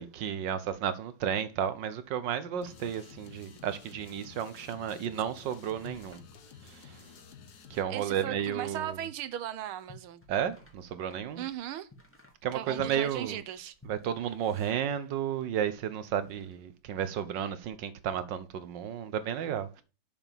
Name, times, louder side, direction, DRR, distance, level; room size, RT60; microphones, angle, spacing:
voice 1, 0.0-6.2 6.6-7.0 7.7-9.0 10.3-11.4 12.4-13.4 13.9-19.8, right 9 dB, 65° right, 1.5 m, -33 dB
sound 1, 2.6-7.9, left 6 dB, 55° left, 1.5 m, -52 dB
sound 2, 4.0-15.5 15.9-16.6, left 1 dB, 5° left, 1.8 m, -55 dB
voice 2, 7.9-10.2 11.4-11.9 12.5-13.7, right 11 dB, 80° right, 1.7 m, -37 dB
7.1 x 6.2 x 7.3 m
omnidirectional pair, 2.3 m